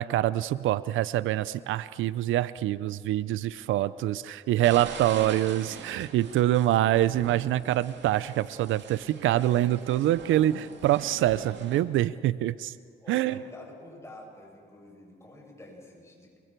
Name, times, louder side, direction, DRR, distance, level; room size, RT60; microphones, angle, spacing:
voice 1, 0.0-12.7 13.1-13.4, right 13 dB, 80° right, 17 dB, 0.5 m, -25 dB
voice 2, 3.6-3.9 4.4-4.7 13.0-16.4, left 1 dB, 15° left, -2 dB, 7.6 m, -49 dB
sound 1, 4.6-11.8, right 6 dB, 65° right, 2.3 m, -43 dB
29.0 x 23.5 x 4.6 m, 2.1 s
cardioid pair, 90°, 20 cm